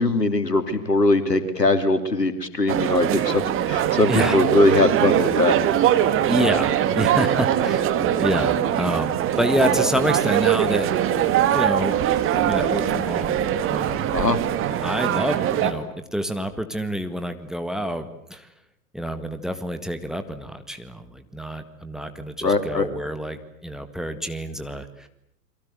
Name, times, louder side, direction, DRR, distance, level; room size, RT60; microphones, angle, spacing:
voice 1, 0.0-5.6 14.1-14.4 22.4-22.9, left 2 dB, 90° left, 10 dB, 3.1 m, -21 dB
sound 1, 2.7-15.7, right 10 dB, 25° right, 2.2 m, -22 dB
voice 2, 6.3-10.9 11.5-12.0 12.3-13.4 13.7-14.1 14.8-18.5 18.9-25.1, equal, ahead, 10 dB, 1.7 m, -27 dB
29.5 x 23.0 x 7.8 m, 0.70 s
figure-of-eight pair, 105°, 47 cm